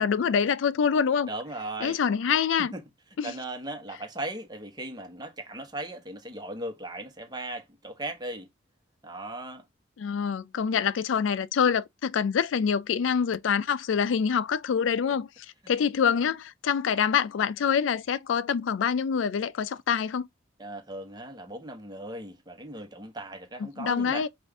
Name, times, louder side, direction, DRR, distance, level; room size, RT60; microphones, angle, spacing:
voice 1, 0.0-1.3 1.8-2.7 3.2-3.3 10.0-20.3 23.6-24.3, left 7 dB, 90° left, 0.4 m, -26 dB
voice 2, 1.2-2.0 2.6-2.8 3.2-8.5 9.0-9.6 20.6-24.2, right 1 dB, 20° right, 1.1 m, -37 dB
5.3 x 2.5 x 3.5 m
head